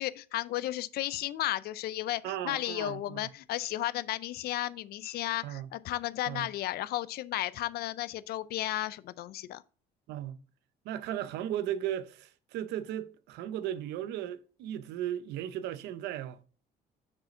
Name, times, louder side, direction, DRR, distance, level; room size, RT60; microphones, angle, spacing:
voice 1, 0.0-9.6, left 14 dB, 65° left, 0.4 m, -34 dB
voice 2, 2.2-3.3 5.4-5.7 6.3-6.5 10.1-10.4 10.8-16.4, right 11 dB, 85° right, 0.6 m, -36 dB
6.2 x 4.9 x 4.2 m
cardioid pair, 110°, 17 cm